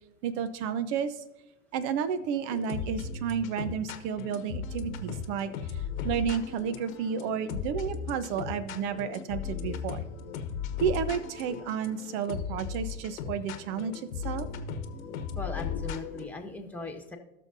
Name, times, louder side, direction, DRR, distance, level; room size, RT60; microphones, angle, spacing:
voice 1, 0.2-1.2 1.7-10.1 10.8-14.5, right 7 dB, 55° right, 13 dB, 1.0 m, -32 dB
sound 1, 2.5-16.3, left 7 dB, 80° left, 1.2 m, -37 dB
voice 2, 15.3-17.2, left 2 dB, 5° left, 2 dB, 1.5 m, -39 dB
18.0 x 6.5 x 2.7 m, 0.99 s
hypercardioid pair, 95°, 40 cm